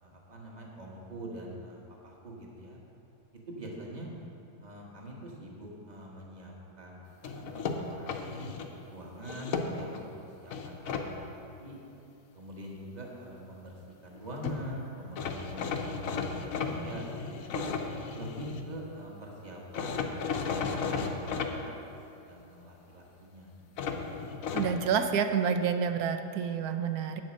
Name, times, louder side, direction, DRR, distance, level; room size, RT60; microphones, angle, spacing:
voice 1, 0.0-2.8 3.5-4.1 4.6-8.5 8.9-10.0 10.4-11.8 12.3-16.1 16.4-17.6 18.1-21.9 22.3-23.5, right 1 dB, 25° right, -2 dB, 1.4 m, -44 dB
sound 1, 7.2-8.7 9.2-10.0 10.5-11.1 14.2-14.3 14.4-14.6 15.2-18.6 19.7-21.5 23.8-24.7, left 5 dB, 60° left, 0.9 m, -34 dB
voice 2, 24.5-27.2, right 7 dB, 70° right, 8 dB, 1.0 m, -28 dB
8.8 x 7.6 x 6.2 m, 2.7 s
omnidirectional pair, 2.0 m